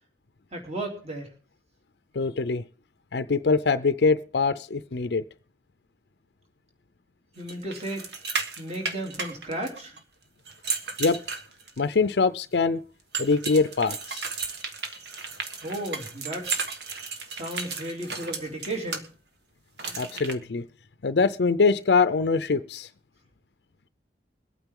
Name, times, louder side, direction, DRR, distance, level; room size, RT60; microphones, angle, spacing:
voice 1, 0.5-1.3 7.3-8.0 8.6-10.0 15.6-16.6 17.3-19.0, right 1 dB, 35° right, 1 dB, 3.2 m, -34 dB
voice 2, 2.1-2.6 3.1-5.2 11.0-11.2 11.8-12.8 13.2-14.3 19.9-20.6 21.0-22.9, left 4 dB, 65° left, 12 dB, 0.5 m, -23 dB
sound 1, 7.5-10.0 10.5-11.9 13.1-19.0 19.8-20.3, right 5 dB, 65° right, 1.5 m, -34 dB
22.0 x 9.0 x 3.7 m, 0.37 s
head